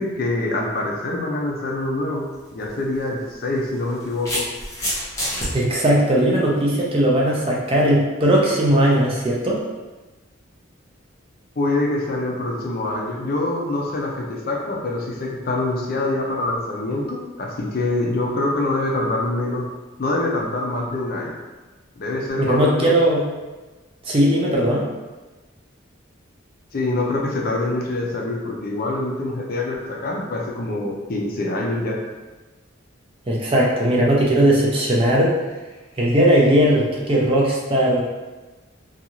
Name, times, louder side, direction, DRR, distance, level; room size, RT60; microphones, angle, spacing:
voice 1, 0.0-2.3 2.5-4.5 11.6-19.6 20.0-21.4 22.0-22.9 26.7-32.0, left 2 dB, 45° left, -1 dB, 0.5 m, -25 dB
sound 1, 2.3-2.5 3.6-5.5, equal, 15° left, 0.7 m, -27 dB
voice 2, 5.5-9.6 22.4-23.2 24.1-24.9 33.3-35.4 36.0-38.0, right 1 dB, 25° right, -3 dB, 0.4 m, -18 dB
2.6 x 2.3 x 2.9 m, 1.2 s
head